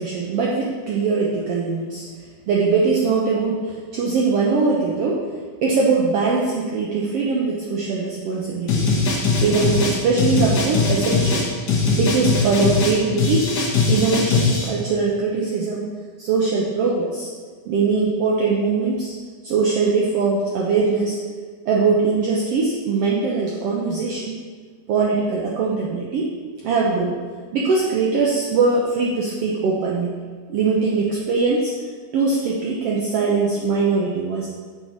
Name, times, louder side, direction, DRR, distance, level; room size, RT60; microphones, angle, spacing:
voice 1, 0.0-2.0 2.5-5.2 5.6-8.9 9.4-11.4 11.9-13.5 13.9-15.8 16.2-17.3 17.7-19.1 19.4-21.1 21.6-24.4 24.9-26.3 26.6-27.1 27.5-30.1 30.5-31.7 32.1-34.5, right 4 dB, 70° right, -3 dB, 1.5 m, -21 dB
sound 1, 8.7-14.7, left 4 dB, 75° left, 0.9 m, -20 dB
6.9 x 5.7 x 4.5 m, 1.6 s
omnidirectional pair, 3.6 m